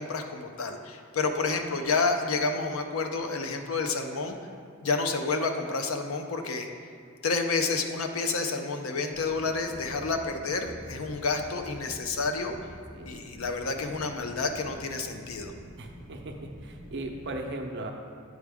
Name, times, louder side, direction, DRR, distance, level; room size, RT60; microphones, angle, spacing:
voice 1, 0.0-4.4 4.8-6.7 7.2-12.5 13.0-15.5, left 4 dB, 70° left, 5 dB, 0.6 m, -29 dB
sound 1, 9.1-17.4, equal, ahead, 1.3 m, -47 dB
voice 2, 15.8-16.4 16.6-17.9, right 2 dB, 55° right, 3 dB, 0.7 m, -37 dB
9.1 x 4.8 x 3.5 m, 2.4 s
head